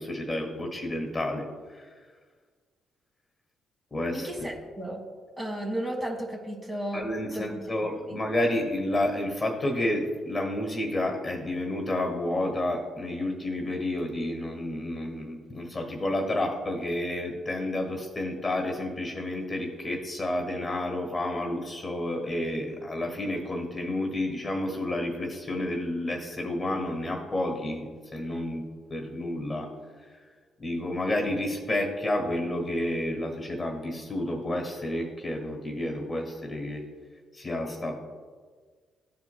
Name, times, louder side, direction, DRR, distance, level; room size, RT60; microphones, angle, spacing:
voice 1, 0.0-1.9 3.9-4.5 6.9-29.7 30.6-36.8 37.3-37.9, left 1 dB, 25° left, 2 dB, 1.4 m, -30 dB
voice 2, 4.1-5.0 5.4-7.0 7.3-8.2, right 1 dB, 20° right, 0 dB, 1.6 m, -34 dB
13.5 x 4.7 x 2.2 m, 1.6 s
cardioid pair, 90°, 0 cm